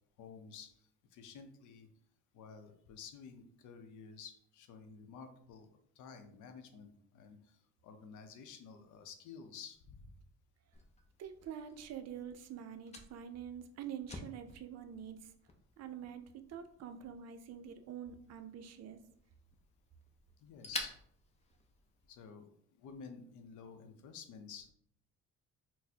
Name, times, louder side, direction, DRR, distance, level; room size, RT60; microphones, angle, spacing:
voice 1, 0.2-1.9 2.3-10.1 20.4-21.0 22.1-24.7, left 6 dB, 80° left, 7 dB, 0.6 m, -52 dB
Fire, 10.7-22.2, left 2 dB, 20° left, 0.5 m, -51 dB
voice 2, 11.2-15.3 15.8-19.0, right 8 dB, 55° right, 8 dB, 0.4 m, -46 dB
4.0 x 2.0 x 2.7 m, 0.67 s
cardioid pair, 90°, 30 cm